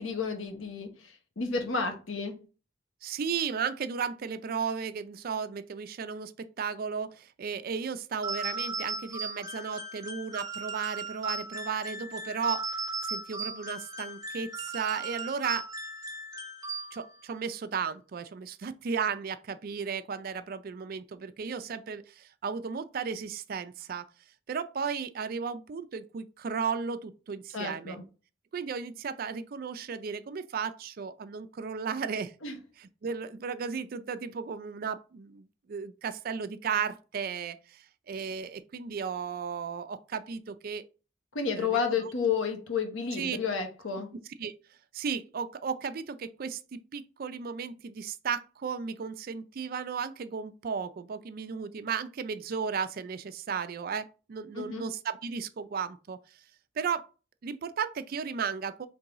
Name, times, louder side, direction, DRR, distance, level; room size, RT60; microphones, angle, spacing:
voice 1, 0.0-2.4 27.5-28.0 32.4-32.5 41.3-44.1 54.5-54.8, left 5 dB, 85° left, 0.9 m, -31 dB
voice 2, 3.0-15.7 16.9-24.1 24.5-28.0 28.5-32.3 32.8-40.9 41.5-42.0 43.2-43.4 44.4-44.5 44.9-56.2 56.8-57.1 57.4-58.9, right 6 dB, 50° right, 0.4 m, -35 dB
sound 1, 8.2-17.3, right 3 dB, 15° right, 0.9 m, -37 dB
4.6 x 3.5 x 3.0 m
head